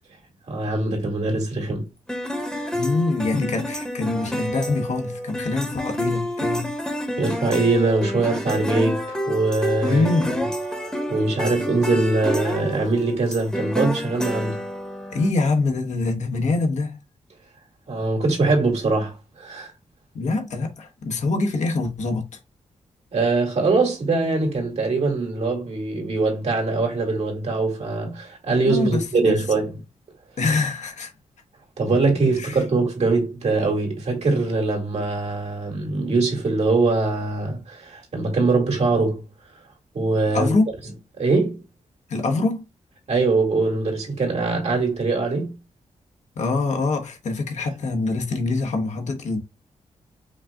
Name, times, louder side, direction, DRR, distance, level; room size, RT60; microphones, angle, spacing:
voice 1, 0.5-1.8 2.3-2.5 7.2-10.1 11.1-14.6 17.9-19.7 23.1-29.7 31.8-39.2 39.9-40.5 41.2-41.6 43.1-45.5, right 3 dB, 60° right, 2.1 m, -22 dB
sound 1, 2.1-15.3, equal, 5° left, 1.1 m, -28 dB
voice 2, 2.7-6.7 9.8-10.3 15.1-17.0 20.1-22.4 28.7-29.4 30.4-31.1 32.3-32.6 40.3-40.6 42.1-42.6 46.4-49.4, left 3 dB, 70° left, 1.1 m, -24 dB
5.4 x 2.4 x 3.6 m
cardioid pair, 90°, 12 cm